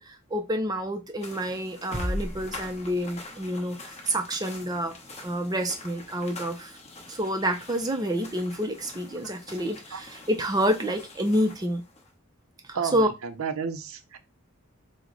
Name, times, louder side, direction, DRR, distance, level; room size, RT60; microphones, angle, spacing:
voice 1, 0.0-5.0 5.2-6.8 7.1-11.8 12.7-13.1, equal, 15° right, 0.4 m, -28 dB
sound 1, 1.2-12.1, left 3 dB, 30° left, 0.9 m, -46 dB
sound 2, 1.9-3.6, equal, 10° left, 1.2 m, -34 dB
voice 2, 12.7-14.2, right 6 dB, 65° right, 0.5 m, -32 dB
4.6 x 2.0 x 3.7 m
head